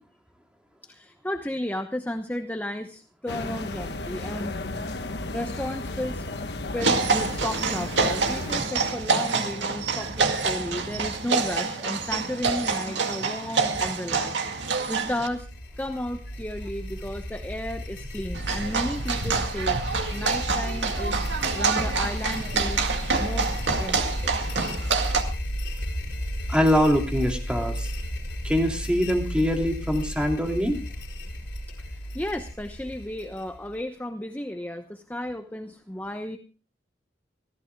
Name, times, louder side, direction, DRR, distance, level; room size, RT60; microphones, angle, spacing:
voice 1, 0.8-4.5 5.3-6.5 6.7-14.3 14.9-15.5 15.8-19.8 20.1-21.3 21.5-22.9 23.2-23.5 23.8-24.3 31.9-36.4, left 1 dB, 10° left, 6 dB, 0.9 m, -33 dB
sound 1, 3.3-8.6, left 2 dB, 65° left, 1.2 m, -34 dB
sound 2, 6.8-15.3 18.3-25.2, right 4 dB, 85° right, 2.0 m, -27 dB
sound 3, 14.7-33.8, equal, 90° left, 5.3 m, -33 dB
voice 2, 26.5-27.9 28.4-30.8, equal, 5° right, 2 dB, 2.7 m, -23 dB
26.0 x 15.0 x 2.3 m, 0.34 s
head